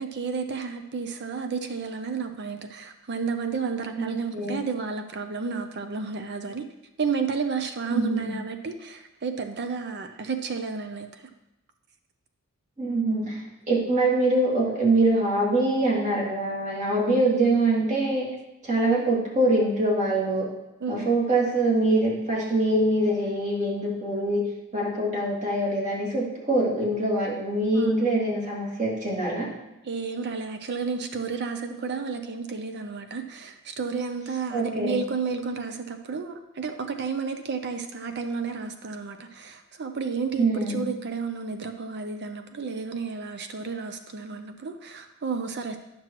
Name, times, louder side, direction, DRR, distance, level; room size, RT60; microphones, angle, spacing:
voice 1, 0.0-6.6 7.0-11.2 20.8-21.0 27.7-28.0 29.8-45.8, right 5 dB, 55° right, 7 dB, 0.5 m, -31 dB
voice 2, 4.0-4.6 7.9-8.3 12.8-18.3 18.6-20.5 20.9-24.4 24.7-29.5 34.5-35.0 40.4-40.9, right 2 dB, 35° right, -5 dB, 2.1 m, -24 dB
10.0 x 6.0 x 3.0 m, 0.92 s
head